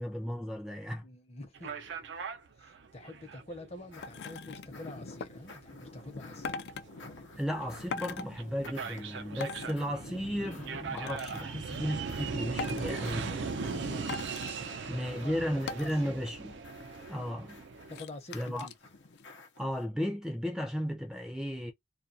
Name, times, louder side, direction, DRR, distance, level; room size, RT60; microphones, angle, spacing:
voice 1, 0.0-1.1 7.4-14.0 14.9-16.5 17.1-17.6 18.3-18.7 19.6-21.7, equal, 5° right, 0.4 m, -35 dB
voice 2, 1.0-2.1 2.6-6.6 13.9-14.3 14.5-15.4 15.8-16.2 17.2-17.3 17.9-18.7, left 2 dB, 35° left, 0.7 m, -47 dB
sound 1, 1.5-18.0, right 5 dB, 85° right, 0.5 m, -40 dB
sound 2, 3.9-19.8, left 3 dB, 90° left, 0.7 m, -51 dB
sound 3, 4.0-4.7 5.2-5.3 6.4-6.8 7.9-8.3 9.4-9.7 11.0-11.4 12.6-13.0 14.1-14.5 15.7-16.0 16.4-16.5 16.7-17.2 17.9-18.7 19.2-19.3, left 5 dB, 65° left, 0.3 m, -40 dB
2.3 x 2.2 x 2.6 m
head